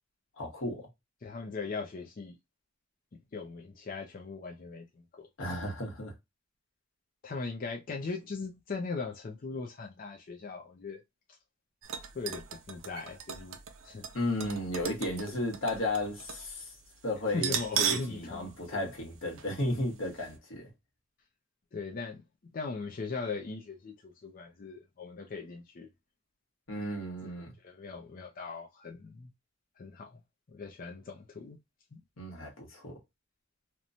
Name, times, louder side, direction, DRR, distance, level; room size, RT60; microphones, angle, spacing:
voice 1, 0.4-0.9 5.4-6.1 14.1-16.7 17.0-20.7 26.7-27.5 32.2-33.0, left 1 dB, 80° left, 1.1 m, -34 dB
voice 2, 1.2-2.4 3.3-4.8 5.2-5.3 7.2-11.0 12.1-13.6 13.8-14.0 15.3-15.4 17.3-18.8 21.7-22.2 22.5-25.9 27.6-29.3 29.8-30.2 30.5-31.6 31.9-32.0, left 4 dB, 45° left, 0.4 m, -39 dB
sound 1, 11.8-16.5 16.7-16.8 17.3-18.2 18.5-18.6 19.4-19.5 19.9-20.0, right 9 dB, 90° right, 0.5 m, -36 dB
2.9 x 2.1 x 2.5 m
head